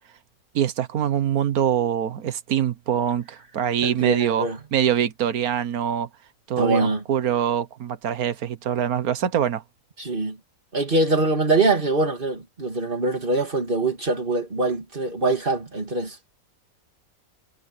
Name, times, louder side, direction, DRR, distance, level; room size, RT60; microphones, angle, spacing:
voice 1, 0.5-6.1 6.5-9.6, right 9 dB, 80° right, 1.6 m, -24 dB
voice 2, 3.8-4.6 6.6-7.0 10.0-10.4 10.7-16.2, right 2 dB, 35° right, 2.9 m, -23 dB
omnidirectional pair, 1.5 m